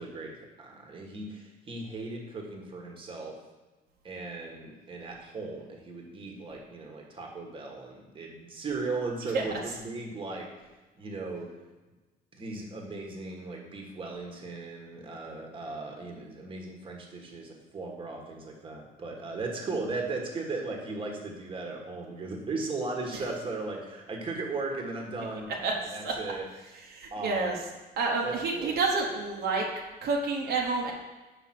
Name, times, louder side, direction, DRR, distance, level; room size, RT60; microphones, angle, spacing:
voice 1, 0.0-3.4 4.0-10.5 11.0-11.5 12.3-25.5 25.9-26.5 27.1-27.6 28.2-28.7, right 3 dB, 30° right, 1 dB, 1.4 m, -37 dB
voice 2, 26.9-27.6 28.0-29.7 30.0-30.9, right 4 dB, 70° right, -1 dB, 1.1 m, -28 dB
5.2 x 5.0 x 5.9 m, 1.2 s
cardioid pair, 110°, 17 cm